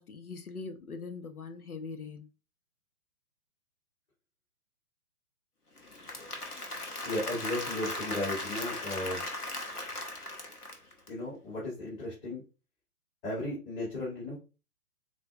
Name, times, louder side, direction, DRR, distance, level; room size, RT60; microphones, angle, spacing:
voice 1, 0.0-2.3, left 4 dB, 75° left, 0.8 m, -42 dB
Applause / Crowd, 5.8-11.1, left 2 dB, 90° left, 1.2 m, -38 dB
voice 2, 7.0-9.2 11.1-12.4 13.2-14.4, left 1 dB, 40° left, 2.6 m, -35 dB
7.6 x 2.7 x 2.4 m
figure-of-eight pair, 130°, 45 cm